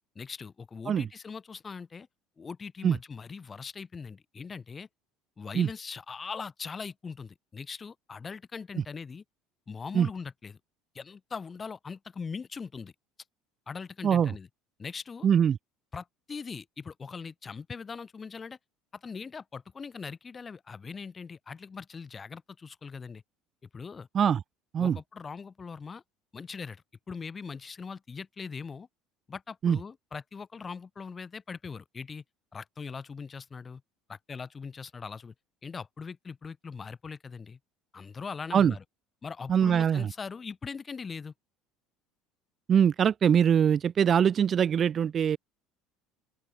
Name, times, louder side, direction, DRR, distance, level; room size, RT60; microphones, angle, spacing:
voice 1, 0.1-2.1 2.4-4.9 5.4-9.2 9.7-10.6 10.9-12.9 13.7-14.5 14.8-15.3 15.9-18.6 18.9-23.2 23.7-24.1 24.8-26.0 26.3-28.9 29.3-32.2 32.5-33.8 34.1-35.3 35.6-37.6 37.9-38.8 39.2-41.3, left 5 dB, 30° left, 4.8 m, -41 dB
voice 2, 15.2-15.6 24.1-24.4 24.7-25.0 29.6-29.8 38.5-38.7 39.5-40.1 42.7-45.4, right 8 dB, 40° right, 0.9 m, -23 dB
open air
hypercardioid pair, 70°, 0 cm